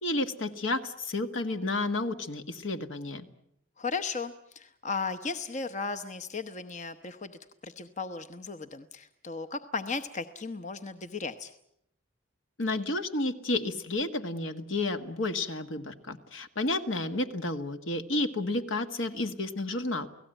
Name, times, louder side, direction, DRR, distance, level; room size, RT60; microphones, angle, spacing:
voice 1, 0.0-3.3 12.6-20.1, left 2 dB, 65° left, 8 dB, 1.7 m, -31 dB
voice 2, 3.8-7.3 7.6-11.5, left 4 dB, 35° left, 7 dB, 0.9 m, -36 dB
29.5 x 18.0 x 9.0 m, 0.77 s
head